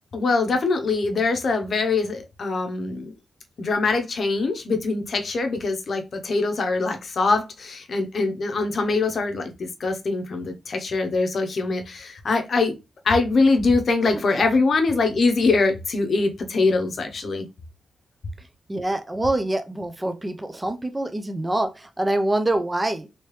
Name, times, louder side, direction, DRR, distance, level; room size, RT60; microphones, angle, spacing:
voice 1, 0.1-3.1 3.6-12.7 13.0-17.5, left 3 dB, 55° left, 0.7 m, -23 dB
voice 2, 14.1-14.5 18.7-23.1, right 1 dB, 15° right, 0.4 m, -25 dB
3.1 x 2.8 x 3.0 m
wide cardioid pair, 120°, 0 cm